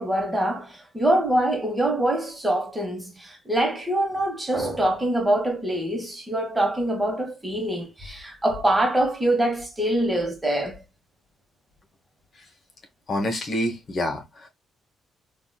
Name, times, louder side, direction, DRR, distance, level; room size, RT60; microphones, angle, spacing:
voice 1, 0.0-10.8, right 1 dB, 10° right, 1.2 m, -24 dB
voice 2, 13.1-14.5, left 1 dB, 50° left, 1.1 m, -27 dB
3.8 x 2.5 x 2.2 m
cardioid pair, 90°, 0 cm